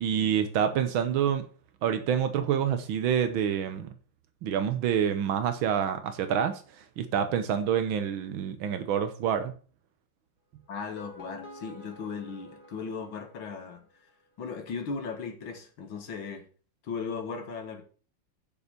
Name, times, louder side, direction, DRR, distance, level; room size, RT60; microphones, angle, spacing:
voice 1, 0.0-1.5 1.8-3.9 4.4-6.6 7.0-9.5, right 8 dB, 85° right, 9 dB, 1.7 m, -27 dB
voice 2, 10.7-13.8 14.4-16.4 16.8-17.8, left 5 dB, 80° left, 4 dB, 2.5 m, -37 dB
sound 1, 10.7-13.9, left 2 dB, 50° left, 3.2 m, -49 dB
8.3 x 6.9 x 6.6 m, 0.41 s
omnidirectional pair, 2.2 m